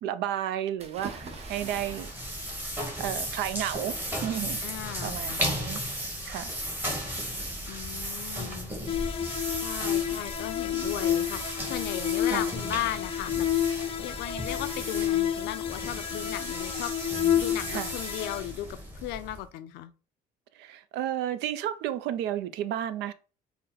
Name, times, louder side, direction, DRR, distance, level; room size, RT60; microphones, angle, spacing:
voice 1, 0.0-2.1 3.0-4.0 4.2-4.6 5.0-5.8 6.3-6.5 12.3-12.5 17.7-17.9 20.5-23.1, right 11 dB, 85° right, 0.4 m, -32 dB
sound 1, 0.8-5.6, right 4 dB, 40° right, 0.8 m, -47 dB
sound 2, 1.0-19.5, equal, 10° right, 1.2 m, -36 dB
voice 2, 4.6-5.5 7.7-8.7 9.3-13.5 14.0-19.9, left 13 dB, 90° left, 0.4 m, -37 dB
sound 3, 8.9-18.4, left 10 dB, 35° left, 0.5 m, -30 dB
4.1 x 2.1 x 3.8 m
cardioid pair, 110°, 17 cm